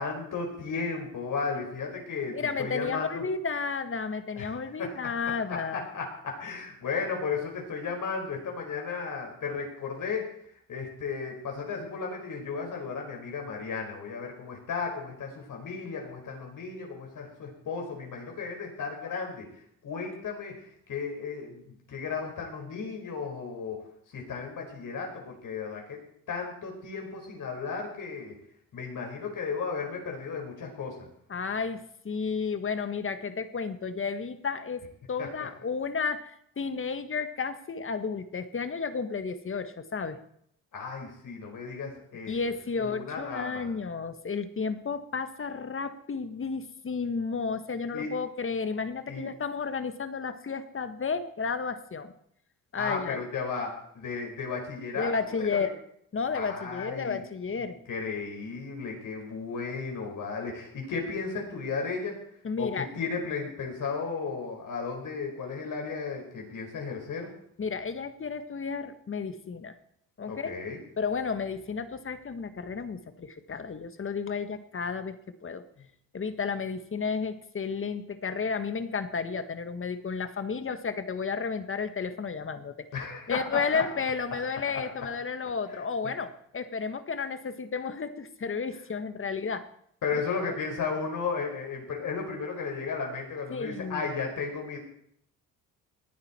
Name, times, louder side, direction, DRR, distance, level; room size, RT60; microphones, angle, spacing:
voice 1, 0.0-3.2 4.4-4.5 4.8-4.9 5.5-10.3 10.7-19.4 19.8-23.8 24.1-26.0 26.3-28.4 28.7-31.1 35.2-35.5 40.7-42.3 42.8-43.7 47.9-48.1 49.1-49.2 52.8-55.7 56.3-57.2 57.6-62.2 62.6-67.3 70.3-70.8 82.9-83.8 84.7-84.8 85.7-86.1 90.0-94.8, left 5 dB, 60° left, 1 dB, 5.1 m, -34 dB
voice 2, 2.3-5.9 31.3-34.8 35.1-40.2 42.3-52.1 52.7-53.2 55.0-55.7 56.1-57.8 62.4-62.9 67.6-69.8 70.2-70.7 71.0-75.6 76.1-82.7 83.3-89.7 90.1-90.2 93.5-94.1, left 5 dB, 35° left, 10 dB, 1.6 m, -32 dB
19.0 x 10.5 x 4.5 m, 0.69 s
supercardioid pair, 75°, 36 cm